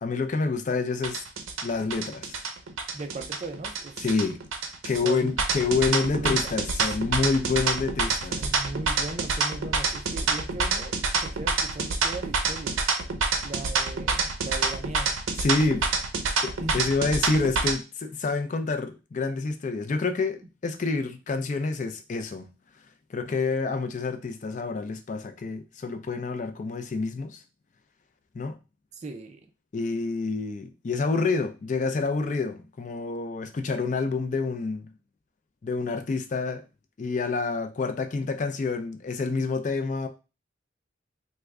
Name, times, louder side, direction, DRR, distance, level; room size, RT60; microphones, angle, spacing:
voice 1, 0.0-1.2 1.6-2.5 4.0-4.4 4.8-8.4 15.4-15.9 16.4-22.5 23.1-27.4 28.3-28.6 29.7-34.9 35.6-36.6 37.0-40.1, left 4 dB, 40° left, 0.3 m, -28 dB
sound 1, 1.0-17.7, right 4 dB, 80° right, 0.6 m, -27 dB
voice 2, 2.9-4.1 4.9-5.4 5.9-7.0 8.4-12.8 13.4-15.2 16.6-16.9 28.9-29.4, right 3 dB, 35° right, 0.4 m, -38 dB
3.3 x 2.1 x 3.5 m
head